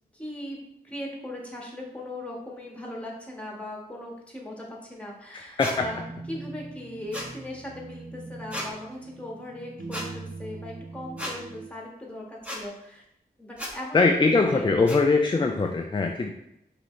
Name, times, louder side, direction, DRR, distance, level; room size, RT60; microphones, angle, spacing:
voice 1, 0.1-6.0 6.3-13.0 13.4-14.7 16.3-16.4, left 1 dB, 5° left, -2 dB, 1.5 m, -39 dB
voice 2, 5.3-5.9 13.9-16.3, left 3 dB, 25° left, 4 dB, 0.4 m, -22 dB
sound 1, 5.6-5.8 7.1-7.3 8.5-8.7 9.9-10.1 11.2-11.4 12.4-12.6 13.6-13.7 14.9-15.0, left 1 dB, 10° right, 1.2 m, -34 dB
sound 2, 5.8-11.7, right 3 dB, 55° right, 0.6 m, -42 dB
5.1 x 2.9 x 3.2 m, 0.82 s
cardioid pair, 45°, 17 cm